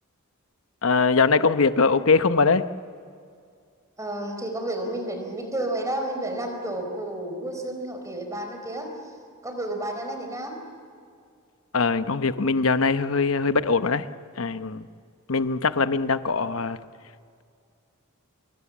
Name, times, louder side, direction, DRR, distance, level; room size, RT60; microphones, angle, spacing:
voice 1, 0.8-2.6 11.7-14.1 14.4-14.8 15.3-16.8, left 4 dB, 75° left, 11 dB, 0.9 m, -22 dB
voice 2, 4.0-9.1 9.4-10.6, right 1 dB, 15° right, 4 dB, 4.5 m, -31 dB
27.0 x 23.0 x 7.3 m, 2.3 s
head